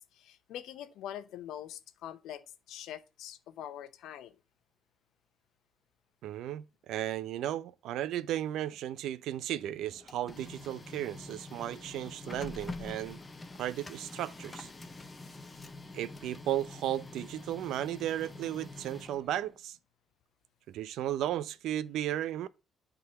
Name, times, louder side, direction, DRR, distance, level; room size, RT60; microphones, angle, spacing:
voice 1, 0.1-4.4, left 11 dB, 90° left, 0.8 m, -44 dB
voice 2, 6.2-13.2 13.6-14.7 15.9-19.8 20.7-22.5, right 12 dB, 80° right, 0.5 m, -35 dB
Printer, 9.8-19.6, left 2 dB, 15° left, 0.7 m, -46 dB
9.5 x 3.9 x 5.7 m
cardioid pair, 165°, 0 cm